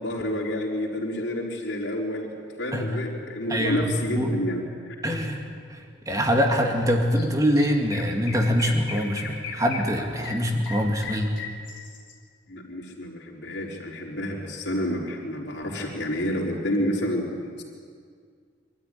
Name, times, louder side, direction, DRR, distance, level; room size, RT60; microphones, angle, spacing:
voice 1, 0.0-2.3 2.6-5.0 12.5-17.6, left 1 dB, 65° left, -2 dB, 4.1 m, -29 dB
voice 2, 3.5-4.4 5.0-11.3, equal, 20° right, 2 dB, 2.2 m, -24 dB
Chirp tweet, 7.1-7.3 7.5-12.1, left 5 dB, 90° left, 3.3 m, -37 dB
24.0 x 13.0 x 9.9 m, 2.1 s
head